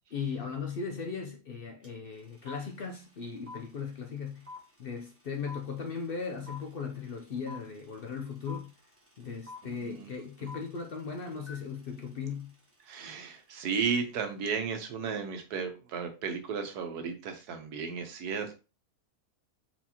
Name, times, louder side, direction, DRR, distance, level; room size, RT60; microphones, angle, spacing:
voice 1, 0.1-4.5 4.8-8.7 9.2-12.5, left 5 dB, 60° left, 0.6 m, -37 dB
sound 1, 1.8-1.9 2.1-13.3, left 3 dB, 10° right, 0.8 m, -49 dB
voice 2, 9.8-10.1 12.9-18.6, right 6 dB, 85° right, 1.4 m, -34 dB
4.3 x 4.3 x 2.8 m
omnidirectional pair, 1.6 m